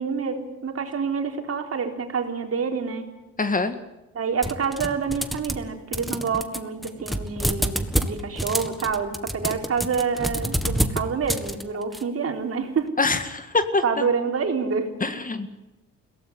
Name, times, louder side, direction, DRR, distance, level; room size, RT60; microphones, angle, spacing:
voice 1, 0.0-3.0 4.1-12.9 13.8-14.9, right 5 dB, 50° right, 4 dB, 3.8 m, -27 dB
voice 2, 3.4-3.8 13.0-14.0 15.0-15.5, left 3 dB, 25° left, 10 dB, 1.9 m, -24 dB
sound 1, 4.4-5.7 5.9-12.0, equal, ahead, 1.8 m, -28 dB
22.0 x 17.5 x 9.5 m, 1.0 s
cardioid pair, 90°, 30 cm